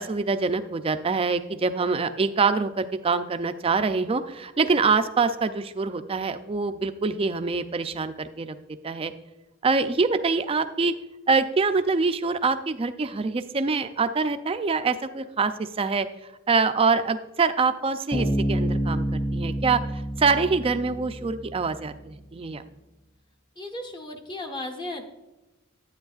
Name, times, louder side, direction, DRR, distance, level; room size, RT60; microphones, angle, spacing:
voice 1, 0.0-8.6 8.8-9.1 9.6-10.9 11.3-16.1 16.5-19.8 20.2-22.6, right 4 dB, 25° right, 10 dB, 0.4 m, -25 dB
Bass guitar, 18.1-21.6, right 1 dB, 40° left, 2.6 m, -28 dB
voice 2, 23.6-25.0, left 1 dB, 20° left, 2 dB, 0.8 m, -35 dB
10.5 x 8.9 x 2.4 m, 1.1 s
head